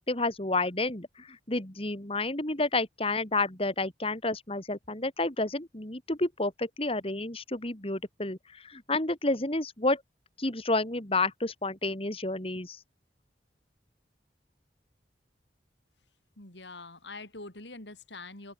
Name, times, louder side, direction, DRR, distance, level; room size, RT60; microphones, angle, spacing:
voice 1, 0.1-10.0 10.4-12.8, left 2 dB, 30° left, 2.8 m, -30 dB
voice 2, 16.4-18.5, left 3 dB, 80° left, 5.7 m, -44 dB
open air
head